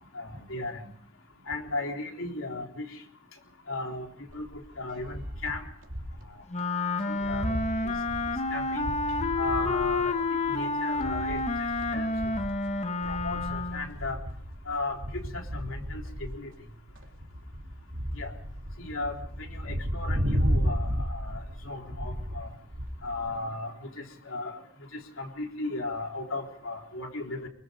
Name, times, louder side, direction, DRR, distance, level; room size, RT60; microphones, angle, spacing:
voice 1, 0.1-0.9 1.5-2.9 3.7-4.1 4.3-5.7 6.3-6.4 7.1-7.5 7.8-7.9 8.5-8.8 9.4-11.4 11.9-12.1 13.0-14.2 14.7-16.5 18.1-18.3 18.8-22.5 23.0-24.6 24.9-27.5, left 2 dB, 70° left, 2 dB, 3.7 m, -36 dB
sound 1, 4.3-6.3 6.6-6.7 7.0-23.3, equal, 65° right, 3.2 m, -34 dB
Wind instrument woodwind instrument, 6.5-13.9, left 3 dB, 35° left, 1.2 m, -29 dB
25.0 x 22.5 x 5.2 m, 0.64 s
head